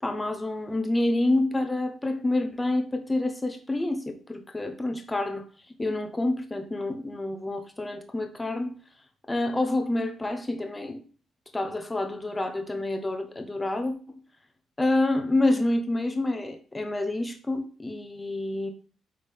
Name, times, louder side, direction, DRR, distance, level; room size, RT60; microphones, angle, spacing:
voice 1, 0.0-5.5 5.8-8.7 9.3-11.0 11.5-14.2 14.8-18.7, left 2 dB, 15° left, 1.1 m, -28 dB
9.9 x 3.7 x 3.7 m
cardioid pair, 90°, 0 cm